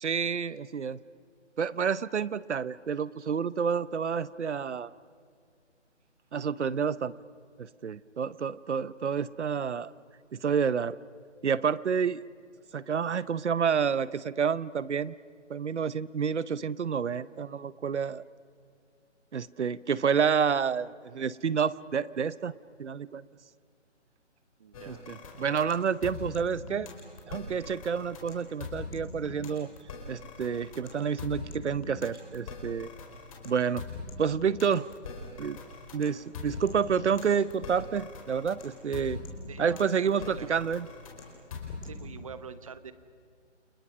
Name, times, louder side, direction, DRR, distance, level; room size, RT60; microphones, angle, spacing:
voice 1, 0.0-1.0 1.6-4.9 6.3-7.1 7.6-9.9 10.3-11.0 11.4-12.2 12.7-15.1 15.5-18.2 19.3-22.5 22.8-23.2 24.9-26.9 27.3-29.7 30.1-32.9 33.4-33.8 34.2-34.9 35.4-35.6 35.9-39.2 39.6-40.9, right 6 dB, 70° right, 18 dB, 0.8 m, -29 dB
voice 2, 24.6-25.0 39.5-40.6 41.8-42.9, right 6 dB, 30° right, 13 dB, 0.9 m, -45 dB
sound 1, 24.7-42.1, left 4 dB, 30° left, 4.6 m, -42 dB
30.0 x 26.5 x 6.2 m, 2.2 s
hypercardioid pair, 165°, 36 cm